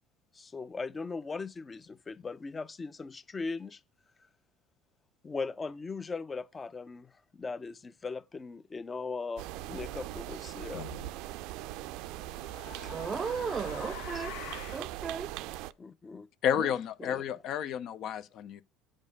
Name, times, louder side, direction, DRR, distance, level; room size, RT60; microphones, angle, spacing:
voice 1, 0.3-3.8 5.2-10.8 14.1-14.2 15.8-16.3 17.0-17.2, left 4 dB, 25° left, 0.6 m, -39 dB
sound 1, 9.4-15.7, right 15 dB, 70° right, 0.5 m, -40 dB
sound 2, 10.7-11.1 12.1-14.9, left 11 dB, 75° left, 0.9 m, -45 dB
voice 2, 12.9-14.4 14.7-15.4 16.5-16.7, right 6 dB, 30° right, 0.6 m, -35 dB
voice 3, 16.4-18.6, left 9 dB, 55° left, 0.7 m, -31 dB
8.5 x 5.4 x 5.3 m
supercardioid pair, 95°, 0 cm